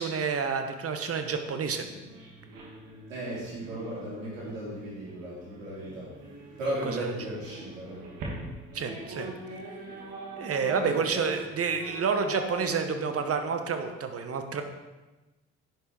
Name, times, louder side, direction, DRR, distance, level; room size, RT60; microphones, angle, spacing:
voice 1, 0.0-1.9 7.0-7.1 8.7-9.3 10.4-14.6, right 5 dB, 35° right, 7 dB, 1.3 m, -29 dB
sound 1, 1.8-13.5, right 1 dB, 55° right, 2.8 m, -43 dB
voice 2, 3.1-6.1 6.6-8.0 10.6-11.2, right 1 dB, 80° right, -6 dB, 4.0 m, -36 dB
11.0 x 6.7 x 4.9 m, 1.1 s
figure-of-eight pair, 50°, 39 cm